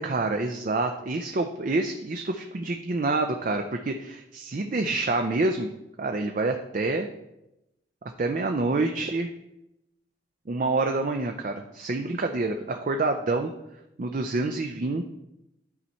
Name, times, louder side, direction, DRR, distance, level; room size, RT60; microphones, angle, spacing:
voice 1, 0.0-5.7 6.0-7.1 8.2-9.3 10.5-13.5 14.0-15.0, right 3 dB, 45° right, 4 dB, 0.5 m, -27 dB
11.0 x 4.2 x 4.4 m, 0.89 s
head